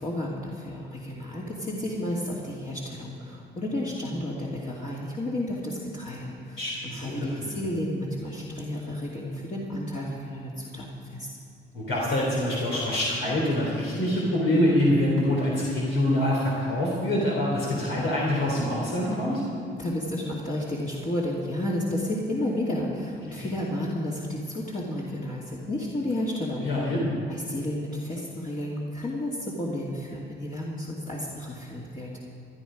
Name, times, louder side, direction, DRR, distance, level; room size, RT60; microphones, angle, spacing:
voice 1, 0.0-11.3 19.8-26.7 27.3-32.2, left 1 dB, 40° left, -5 dB, 2.4 m, -32 dB
voice 2, 6.6-7.6 11.7-19.4 23.3-23.5 26.6-27.1, left 1 dB, 80° left, -4 dB, 3.2 m, -25 dB
18.0 x 11.5 x 5.1 m, 2.6 s
cardioid pair, 90°, 20 cm